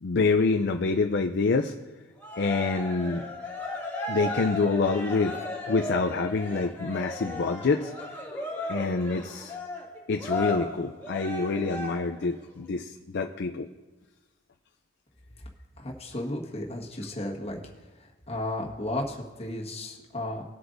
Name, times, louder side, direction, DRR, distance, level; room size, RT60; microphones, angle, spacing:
voice 1, 0.0-1.7 2.4-3.3 4.1-5.4 5.7-8.3 8.7-9.6 10.1-13.7, left 4 dB, 55° left, 6 dB, 0.5 m, -26 dB
Cheering, 2.2-12.3, left 1 dB, 10° left, 1.9 m, -35 dB
voice 2, 15.8-17.6 18.0-20.4, left 1 dB, 30° left, -2 dB, 1.5 m, -34 dB
19.5 x 7.9 x 2.6 m, 1.2 s
head